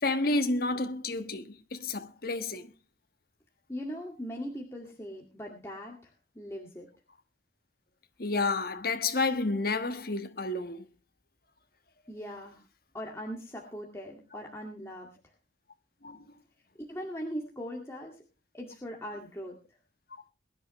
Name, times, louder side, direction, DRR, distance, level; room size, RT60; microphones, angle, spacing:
voice 1, 0.0-2.7 8.2-10.8 16.0-16.2, left 3 dB, 50° left, 1.4 m, -30 dB
voice 2, 3.7-6.9 12.1-12.7 12.9-15.3 16.9-18.2 18.5-19.6, equal, 15° left, 2.1 m, -40 dB
22.0 x 10.5 x 3.2 m
head